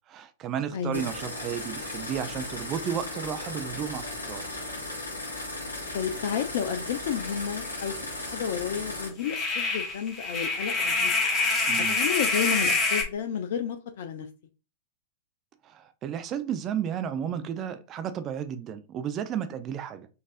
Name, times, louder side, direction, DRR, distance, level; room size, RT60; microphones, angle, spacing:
voice 1, 0.1-4.5 11.7-12.0 15.6-20.1, right 9 dB, 35° right, 0.4 m, -33 dB
voice 2, 0.7-1.0 5.9-11.1 11.9-14.3, left 8 dB, 60° left, 0.4 m, -31 dB
sound 1, 0.9-9.1, left 2 dB, 90° left, 1.5 m, -36 dB
sound 2, 7.2-7.3 7.6-7.7 9.2-13.0, left 3 dB, 25° left, 1.0 m, -26 dB
4.0 x 2.5 x 2.5 m
figure-of-eight pair, 100°, 0 cm